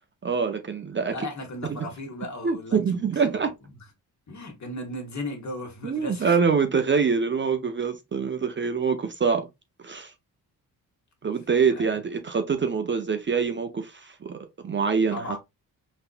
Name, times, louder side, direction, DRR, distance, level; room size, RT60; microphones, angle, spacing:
voice 1, 0.2-1.3 1.6-1.8 2.4-3.5 5.8-9.5 9.8-10.1 11.2-15.4, right 5 dB, 30° right, 0.6 m, -25 dB
voice 2, 1.1-3.4 3.7-3.8 4.3-6.4 11.7-11.9 15.1-15.4, left 1 dB, 45° left, 1.4 m, -36 dB
4.0 x 2.7 x 2.4 m
supercardioid pair, 60°, 38 cm